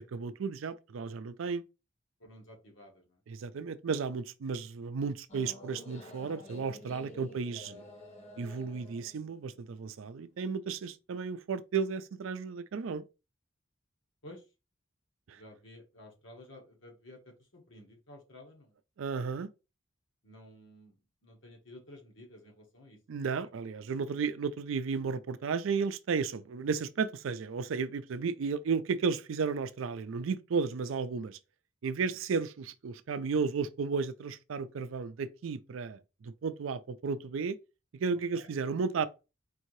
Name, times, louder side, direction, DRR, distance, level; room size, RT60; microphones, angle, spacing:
voice 1, 0.0-1.6 3.3-7.8 8.4-13.0 15.3-15.4 19.0-19.5 23.1-31.4 31.8-37.6 37.9-39.1, right 5 dB, 85° right, 0.4 m, -33 dB
voice 2, 2.2-3.2 7.3-7.4 9.8-9.9 14.2-14.4 15.4-18.7 20.2-21.0 21.2-23.0 23.4-23.5 38.3-38.5, left 1 dB, 75° left, 1.2 m, -53 dB
sound 1, 5.3-10.4, left 1 dB, 35° left, 0.8 m, -50 dB
4.5 x 2.7 x 3.1 m
head